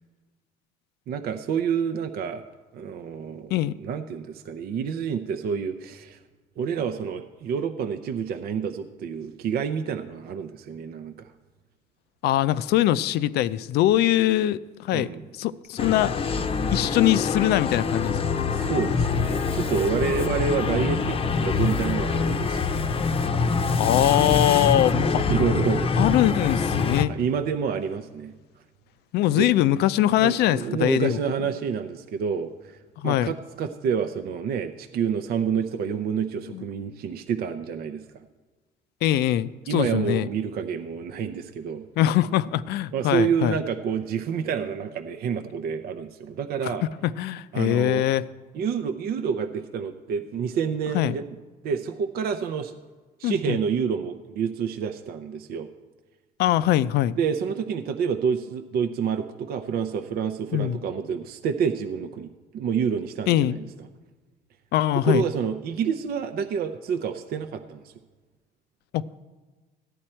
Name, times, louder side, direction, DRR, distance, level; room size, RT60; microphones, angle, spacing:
voice 1, 1.1-2.4 2.7-3.5 3.8-6.2 6.6-11.3 14.9-15.2 18.5-22.9 25.3-26.2 27.1-28.3 29.4-29.5 30.2-32.8 33.0-38.0 39.7-41.8 42.9-46.8 47.5-48.0 48.5-51.2 51.6-52.7 53.2-55.7 57.1-62.3 62.5-63.6 65.0-67.9, right 7 dB, 65° right, 8 dB, 0.6 m, -28 dB
voice 2, 12.2-15.1 15.4-16.1 16.7-18.2 23.8-25.3 26.0-27.1 29.1-31.2 33.0-33.3 36.5-36.6 39.0-40.3 42.0-43.6 46.6-46.7 47.0-48.3 50.9-51.2 53.2-53.6 56.4-57.2 60.5-60.8 63.3-63.6 64.7-65.3 68.9-69.2, left 13 dB, 75° left, 17 dB, 0.4 m, -22 dB
sound 1, 15.8-27.1, left 4 dB, 35° left, 0.7 m, -25 dB
15.0 x 10.0 x 4.4 m, 1.3 s
cardioid pair, 110°, 17 cm